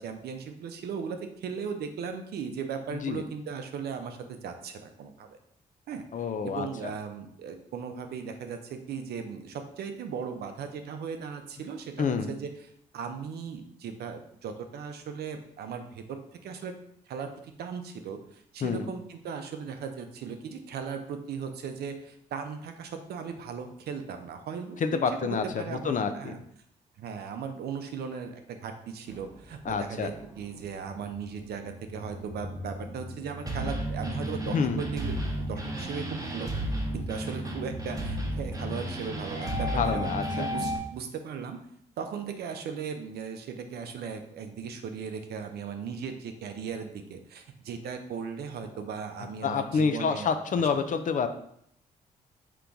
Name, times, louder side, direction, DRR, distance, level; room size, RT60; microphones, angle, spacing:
voice 1, 0.0-5.4 5.9-6.0 6.4-12.5 12.9-16.7 17.1-26.4 27.0-36.5 36.9-41.6 42.0-50.3, right 6 dB, 75° right, 6 dB, 0.5 m, -37 dB
voice 2, 6.1-6.7 12.0-12.3 18.6-18.9 24.8-26.4 29.7-30.1 34.5-34.8 39.7-40.5 49.4-51.3, left 6 dB, 50° left, 9 dB, 0.5 m, -28 dB
sound 1, 29.1-40.8, right 1 dB, 20° right, 0.9 m, -34 dB
3.8 x 3.0 x 3.5 m, 0.69 s
cardioid pair, 65°, 17 cm